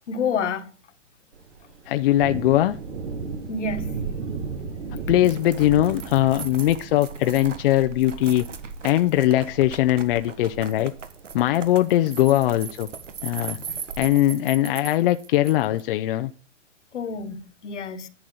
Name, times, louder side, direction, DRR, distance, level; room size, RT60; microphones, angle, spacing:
voice 1, 0.1-0.7 3.5-3.9 13.5-13.8 16.9-18.1, left 5 dB, 75° left, 1.6 m, -29 dB
Thunder, 1.3-14.0, right 5 dB, 60° right, 2.7 m, -36 dB
voice 2, 1.9-2.8 4.9-8.4 8.8-10.9 11.3-12.9 13.2-13.6 14.0-16.3, left 14 dB, 50° left, 0.6 m, -21 dB
sound 1, 5.2-15.8, right 6 dB, 85° right, 1.6 m, -39 dB
11.0 x 8.5 x 4.0 m
hypercardioid pair, 125°, 37 cm